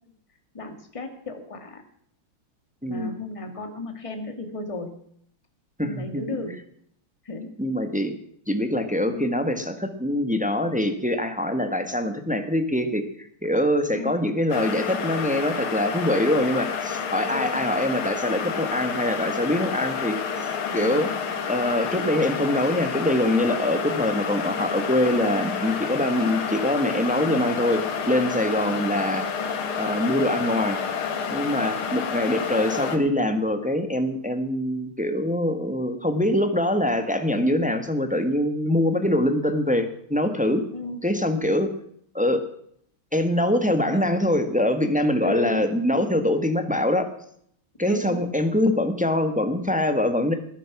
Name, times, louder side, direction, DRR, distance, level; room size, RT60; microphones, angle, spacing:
voice 1, 0.5-1.8 2.9-5.0 5.8-6.6 7.2-7.5 9.0-9.3 13.9-14.2 17.3-17.7 20.8-21.0 28.6-28.9 40.7-41.0 43.9-44.1 45.2-45.7 47.8-48.2, left 2 dB, 15° left, 6 dB, 1.9 m, -34 dB
voice 2, 2.8-3.1 5.8-6.2 7.6-8.1 8.5-20.2 20.7-21.1 21.5-29.4 29.8-30.8 31.3-40.6 41.0-41.7 42.1-42.5 43.1-47.1 47.8-50.3, left 1 dB, 5° right, 7 dB, 1.1 m, -24 dB
sound 1, 14.5-33.0, left 6 dB, 80° left, 2.5 m, -29 dB
19.5 x 10.5 x 6.0 m, 0.66 s
omnidirectional pair, 2.3 m